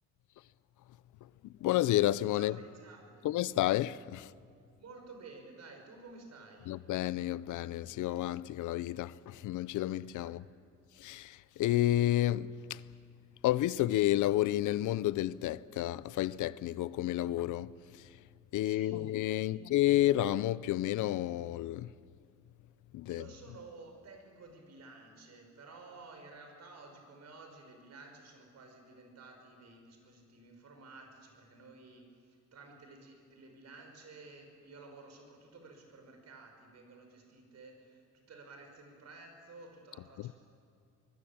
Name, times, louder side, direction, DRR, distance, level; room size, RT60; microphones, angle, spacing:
voice 1, 1.6-2.6 3.2-4.3 6.7-10.4 11.0-12.8 13.4-18.1 18.5-21.9 22.9-23.3 40.2-40.3, left 14 dB, 80° left, 0.7 m, -31 dB
voice 2, 2.3-3.3 4.7-6.8 10.2-10.6 18.6-19.1 19.4-19.6 23.1-40.3, right 3 dB, 60° right, 6.1 m, -53 dB
24.5 x 20.5 x 8.8 m
cardioid pair, 90°, 30 cm